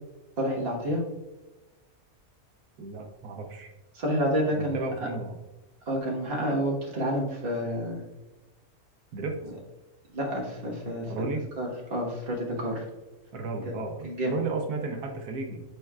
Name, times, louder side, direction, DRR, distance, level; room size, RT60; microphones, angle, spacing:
voice 1, 0.4-1.0 3.9-4.8 5.9-8.0 10.1-12.8 13.6-13.8 14.0-14.3, equal, 40° right, -2 dB, 1.6 m, -29 dB
voice 2, 2.8-3.7 4.5-5.4 9.1-9.4 11.1-11.4 13.3-15.6, right 3 dB, 85° right, 3 dB, 1.3 m, -33 dB
9.6 x 4.4 x 2.3 m, 1.1 s
omnidirectional pair, 1.6 m